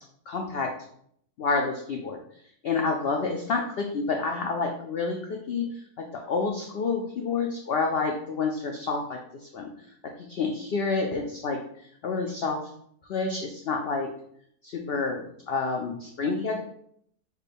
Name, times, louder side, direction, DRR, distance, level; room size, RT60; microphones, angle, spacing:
voice 1, 0.3-0.7 1.4-2.2 2.6-9.7 10.0-11.6 12.0-12.6 13.0-14.1 14.6-16.6, left 4 dB, 75° left, 2 dB, 0.5 m, -29 dB
6.4 x 2.2 x 3.4 m, 0.68 s
omnidirectional pair, 1.6 m